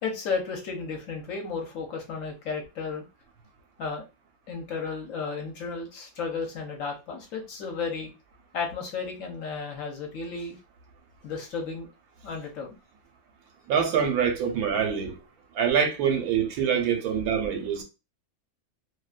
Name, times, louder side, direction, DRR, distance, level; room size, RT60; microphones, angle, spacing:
voice 1, 0.0-3.0 3.8-4.0 4.5-8.1 8.5-10.6 11.2-11.9 12.2-12.7, left 5 dB, 65° left, 1.0 m, -33 dB
voice 2, 13.7-15.2 15.5-17.8, right 7 dB, 85° right, 1.1 m, -25 dB
2.7 x 2.1 x 2.3 m
omnidirectional pair, 1.6 m